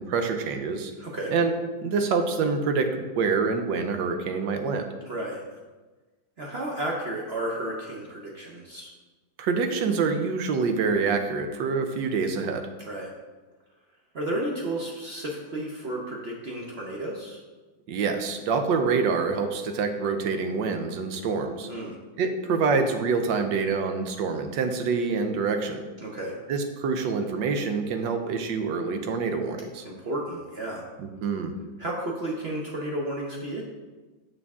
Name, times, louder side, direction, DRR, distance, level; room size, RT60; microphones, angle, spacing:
voice 1, 0.0-0.9 1.3-1.5 1.8-4.9 9.4-12.7 17.9-21.7 22.2-25.9 26.5-29.9 31.0-31.5, right 4 dB, 80° right, 7 dB, 1.4 m, -26 dB
voice 2, 1.0-1.3 5.1-5.6 6.4-8.9 12.8-13.1 14.1-17.4 21.7-22.0 26.0-26.4 29.8-30.8 31.8-33.6, right 1 dB, 55° right, -2 dB, 0.7 m, -32 dB
6.6 x 5.6 x 3.6 m, 1.3 s
omnidirectional pair, 2.0 m